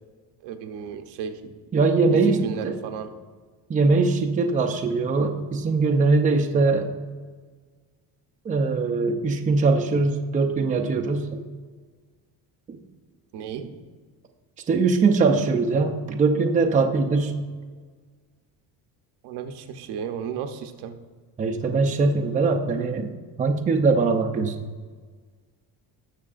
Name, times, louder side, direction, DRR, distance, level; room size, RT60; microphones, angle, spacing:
voice 1, 0.4-1.6 2.1-3.1 13.3-13.7 19.2-21.0, right 7 dB, 75° right, 6 dB, 0.9 m, -34 dB
voice 2, 1.7-2.7 3.7-6.9 8.4-11.4 12.7-12.8 14.7-17.3 21.4-23.1 23.4-24.7, right 4 dB, 20° right, 3 dB, 0.5 m, -21 dB
17.5 x 6.6 x 2.5 m, 1.5 s
cardioid pair, 160°, 40 cm